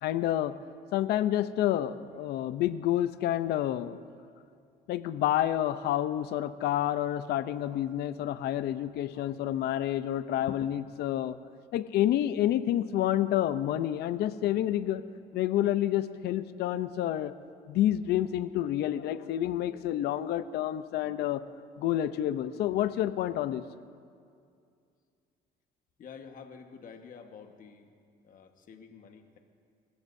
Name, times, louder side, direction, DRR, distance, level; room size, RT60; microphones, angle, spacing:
voice 1, 0.0-0.6 0.9-4.0 4.9-11.4 11.7-15.0 15.3-17.3 17.7-21.4 21.8-23.6, left 12 dB, 75° left, 13 dB, 0.7 m, -29 dB
voice 2, 26.0-27.9 28.2-29.4, left 6 dB, 50° left, 5 dB, 1.4 m, -49 dB
27.5 x 16.0 x 2.7 m, 2.3 s
cardioid pair, 110°, 17 cm